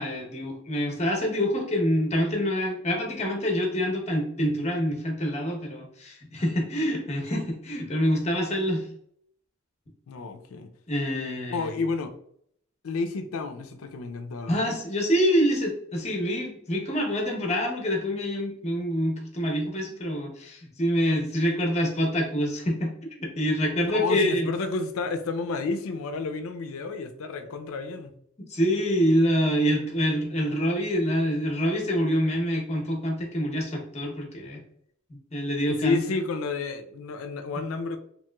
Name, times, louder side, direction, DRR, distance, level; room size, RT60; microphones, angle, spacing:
voice 1, 0.0-8.9 10.9-11.8 14.5-22.9 23.2-24.5 28.5-34.6 35.3-36.0, equal, 30° left, 0.7 m, -26 dB
voice 2, 10.1-10.7 11.5-12.1 12.8-14.6 23.9-28.2 35.7-38.0, left 4 dB, 80° left, 0.4 m, -30 dB
3.0 x 2.9 x 2.2 m
head